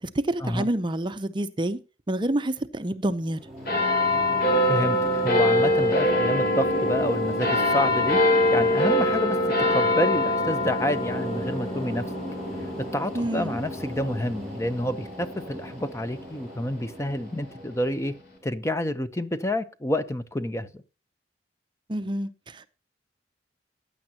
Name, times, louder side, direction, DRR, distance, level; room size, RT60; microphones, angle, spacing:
voice 1, 0.0-1.8 2.1-3.4 13.1-13.6 21.9-22.7, right 1 dB, 25° right, 0.6 m, -28 dB
sound 1, 3.1-18.4, right 1 dB, ahead, 3.1 m, -38 dB
sound 2, 3.7-16.5 17.2-17.3, left 1 dB, 60° left, 3.2 m, -24 dB
voice 2, 4.6-8.2 8.5-12.0 12.8-18.1 18.4-20.8, left 1 dB, 15° left, 0.7 m, -28 dB
15.0 x 9.7 x 2.9 m
head